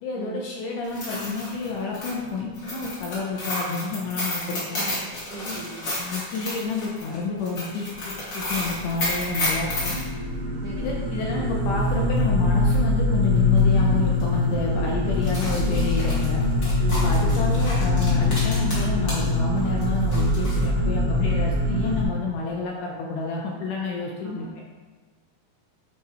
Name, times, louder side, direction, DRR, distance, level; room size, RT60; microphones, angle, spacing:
voice 1, 0.0-4.8 5.5-5.6 6.0-10.0 10.8-16.4 17.0-24.5, left 4 dB, 75° left, -2 dB, 2.0 m, -30 dB
sound 1, 0.8-10.0 12.2-12.3 12.7-12.8 13.6-13.8 14.1-14.2 15.1-19.3 19.6-20.6, left 1 dB, 35° left, 2.3 m, -31 dB
voice 2, 5.3-5.9 10.6-11.0 16.8-17.4 24.2-24.3, right 5 dB, 80° right, -6 dB, 1.4 m, -37 dB
sound 2, 8.4-22.0, left 2 dB, 60° right, 1.6 m, -23 dB
9.5 x 3.8 x 4.2 m, 1.3 s
omnidirectional pair, 4.4 m